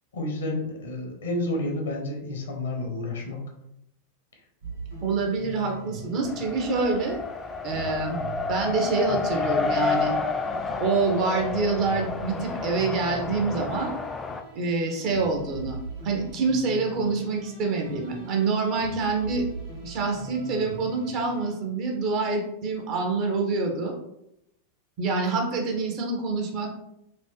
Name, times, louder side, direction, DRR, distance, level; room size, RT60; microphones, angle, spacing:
voice 1, 0.1-3.5, left 1 dB, 65° left, 1 dB, 0.8 m, -30 dB
sound 1, 4.6-21.5, right 1 dB, 80° right, 1.3 m, -41 dB
voice 2, 5.0-7.2 7.6-8.2 8.5-10.1 10.8-13.9 14.5-15.8 16.0-19.4 19.8-24.0 25.0-26.7, right 4 dB, 40° right, 1 dB, 0.8 m, -26 dB
Race car auto racing, 6.3-14.4, left 4 dB, 15° left, 0.3 m, -30 dB
3.1 x 2.5 x 3.5 m, 0.80 s
figure-of-eight pair, 90°, 0 cm